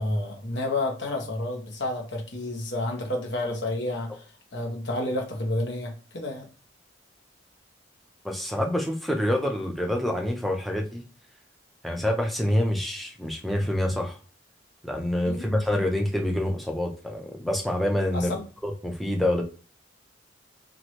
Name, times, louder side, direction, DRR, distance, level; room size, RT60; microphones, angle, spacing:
voice 1, 0.0-6.5 15.2-15.6 18.1-18.4, left 1 dB, 70° left, 1 dB, 0.9 m, -30 dB
voice 2, 8.2-11.0 11.8-14.2 14.8-18.3 18.6-19.4, left 1 dB, ahead, 1 dB, 0.5 m, -26 dB
3.1 x 2.5 x 2.9 m, 0.37 s
head